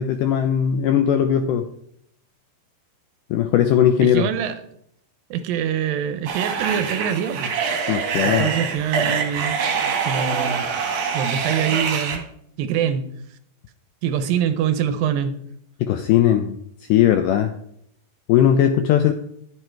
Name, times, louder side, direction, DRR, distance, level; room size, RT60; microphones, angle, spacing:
voice 1, 0.0-1.7 3.3-4.3 7.9-8.5 15.8-16.6 16.9-17.5 18.3-19.1, left 10 dB, 85° left, 7 dB, 1.9 m, -18 dB
voice 2, 4.0-4.6 5.3-7.5 8.2-9.6 10.1-10.7 11.1-12.2 12.6-13.1 14.0-15.4, right 8 dB, 80° right, 10 dB, 2.3 m, -24 dB
sound 1, 6.3-12.2, right 5 dB, 60° right, 2.3 m, -24 dB
11.5 x 7.6 x 4.5 m, 0.72 s
omnidirectional pair, 4.3 m